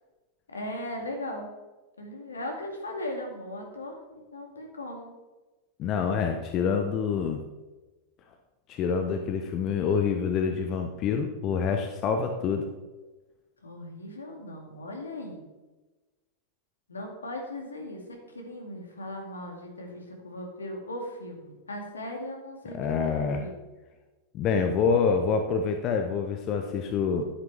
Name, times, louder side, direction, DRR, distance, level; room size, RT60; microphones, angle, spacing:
voice 1, 0.5-1.5 2.0-5.1 13.6-15.4 16.9-23.5, left 1 dB, 75° left, 2 dB, 2.3 m, -38 dB
voice 2, 5.8-7.4 8.7-12.6 22.7-23.4 24.3-27.2, left 6 dB, 35° left, 5 dB, 1.0 m, -26 dB
11.5 x 10.0 x 3.5 m, 1.2 s
figure-of-eight pair, 90°, 0 cm